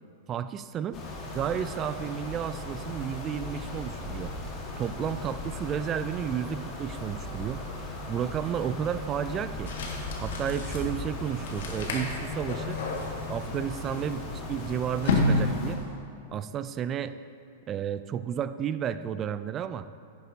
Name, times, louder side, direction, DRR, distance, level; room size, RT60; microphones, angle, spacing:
voice 1, 0.3-1.0 1.3-4.3 4.8-7.6 8.1-9.7 10.2-12.8 13.3-15.8 16.3-17.1 17.7-19.9, right 9 dB, 25° right, 13 dB, 0.3 m, -32 dB
sound 1, 0.9-15.8, left 2 dB, 30° left, 1.6 m, -38 dB
sound 2, 9.7-15.9, left 2 dB, 75° left, 1.5 m, -31 dB
11.0 x 9.3 x 2.8 m, 2.4 s
supercardioid pair, 140°, 0 cm